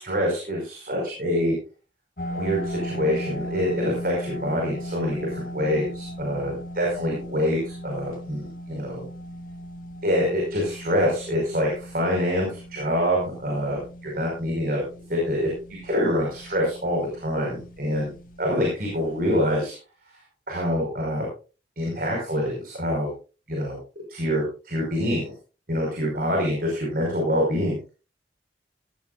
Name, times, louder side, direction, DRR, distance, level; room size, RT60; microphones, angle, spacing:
voice 1, 0.0-1.5 2.3-9.0 10.0-14.8 15.1-15.5 15.8-18.1 18.4-19.7 20.5-21.3 21.8-23.1 23.5-23.8 24.1-25.3 25.7-27.8, equal, 50° right, -1 dB, 5.3 m, -25 dB
sound 1, 2.2-19.4, equal, 50° left, 2.9 m, -38 dB
18.0 x 14.0 x 2.5 m, 0.33 s
head